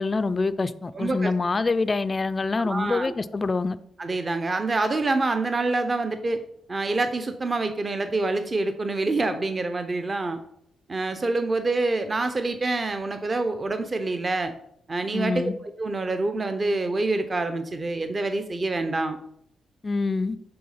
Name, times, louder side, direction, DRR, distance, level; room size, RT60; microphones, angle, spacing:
voice 1, 0.0-3.8 15.1-15.5 19.8-20.4, left 3 dB, 25° left, 13 dB, 0.3 m, -25 dB
voice 2, 0.9-1.3 2.6-3.1 4.0-6.4 6.7-10.4 10.9-14.5 14.9-15.5 15.8-19.2, right 2 dB, 30° right, 8 dB, 0.5 m, -26 dB
7.7 x 3.6 x 5.6 m, 0.73 s
cardioid pair, 130°, 0 cm